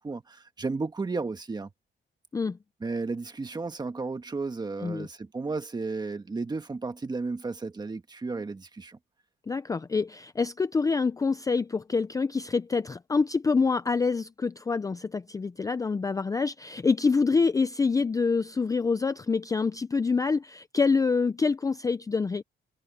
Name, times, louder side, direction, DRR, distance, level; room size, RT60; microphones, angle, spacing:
voice 1, 0.0-1.7 2.8-9.0, right 3 dB, 20° right, 1.6 m, -33 dB
voice 2, 9.5-22.4, left 4 dB, 15° left, 0.4 m, -26 dB
cardioid pair, 145°, 20 cm